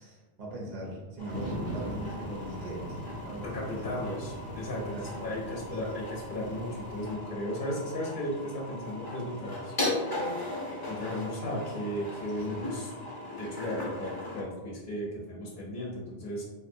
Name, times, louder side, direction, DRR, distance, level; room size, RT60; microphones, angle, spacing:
voice 1, 0.0-3.9 4.8-5.7 12.3-12.6, right 1 dB, 50° right, -3 dB, 0.7 m, -40 dB
sound 1, 1.2-14.4, left 2 dB, 25° left, 0.6 m, -38 dB
sound 2, 1.3-7.1, right 1 dB, 25° right, 0.4 m, -41 dB
voice 2, 3.4-4.8 5.2-9.7 10.1-12.9 13.4-16.4, left 1 dB, 60° left, -4 dB, 0.7 m, -35 dB
3.4 x 2.6 x 2.5 m, 1.3 s
omnidirectional pair, 1.0 m